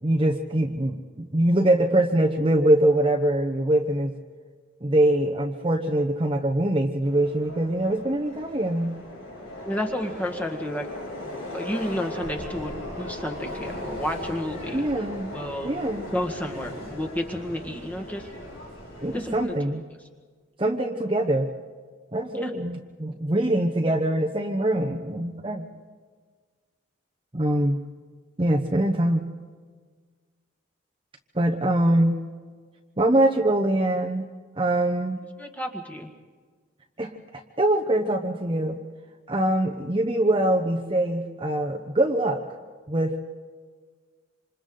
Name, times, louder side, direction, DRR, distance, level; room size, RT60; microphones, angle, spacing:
voice 1, 0.0-4.1 4.8-8.9 14.7-15.3 15.6-16.1 19.0-19.8 20.6-21.5 22.1-25.7 27.3-27.8 28.4-29.2 31.3-32.2 33.0-34.3 34.6-35.2 37.0-38.8 39.3-42.4 42.9-43.2, right 1 dB, 25° right, 2 dB, 1.0 m, -23 dB
Subway metro underground, 7.0-19.4, left 1 dB, 85° left, 7.3 m, -38 dB
voice 2, 9.6-10.9 11.2-14.8 15.3-15.7 16.1-18.2 19.1-19.5 22.3-22.5 35.4-36.1, equal, 10° left, 2 dB, 1.7 m, -31 dB
27.5 x 26.5 x 3.9 m, 1.5 s
head